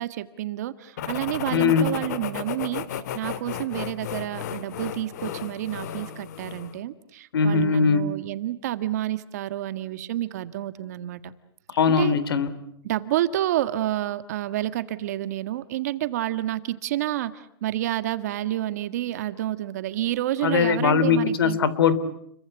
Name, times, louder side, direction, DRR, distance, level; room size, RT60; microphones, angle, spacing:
voice 1, 0.0-11.3 11.9-12.2 12.8-21.6, right 13 dB, 40° right, 12 dB, 1.7 m, -29 dB
sound 1, 1.0-6.8, left 9 dB, 45° left, 1.9 m, -34 dB
voice 2, 1.5-1.9 7.3-8.1 11.7-12.5 20.4-21.9, left 6 dB, 70° left, 16 dB, 3.4 m, -21 dB
30.0 x 23.5 x 8.3 m, 0.71 s
hypercardioid pair, 175°, 13 cm